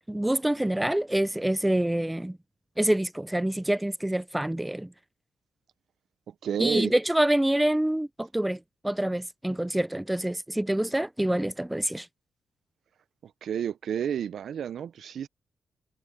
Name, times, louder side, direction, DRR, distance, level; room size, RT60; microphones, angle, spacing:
voice 1, 0.1-2.4 2.8-4.9 6.6-12.1, right 1 dB, 10° right, 0.4 m, -26 dB
voice 2, 6.3-6.9 13.2-15.3, right 8 dB, 75° right, 0.6 m, -31 dB
cardioid pair, 70°, 0 cm